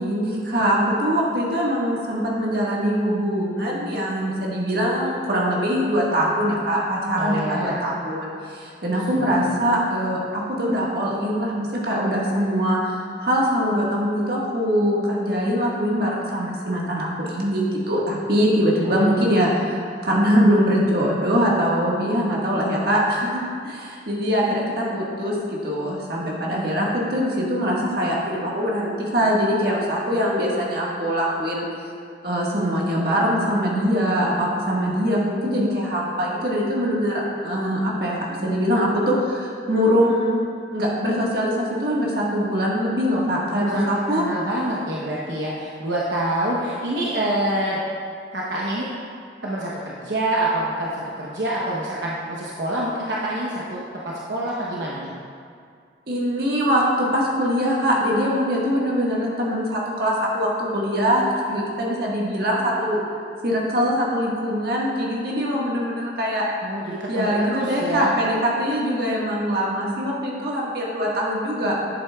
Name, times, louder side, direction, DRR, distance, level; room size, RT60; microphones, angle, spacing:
voice 1, 0.0-12.9 13.2-31.7 32.2-38.1 38.4-40.4 40.7-44.2 56.1-60.5 60.7-61.2 61.5-63.0 63.4-66.5 67.1-71.8, equal, 60° right, -4 dB, 1.5 m, -22 dB
voice 2, 7.1-7.8 8.9-9.4 18.8-19.2 43.5-43.8 44.1-47.8 48.3-48.9 49.4-55.1 66.6-68.1, right 1 dB, 80° right, -5 dB, 0.9 m, -27 dB
11.0 x 7.7 x 2.3 m, 2.2 s
head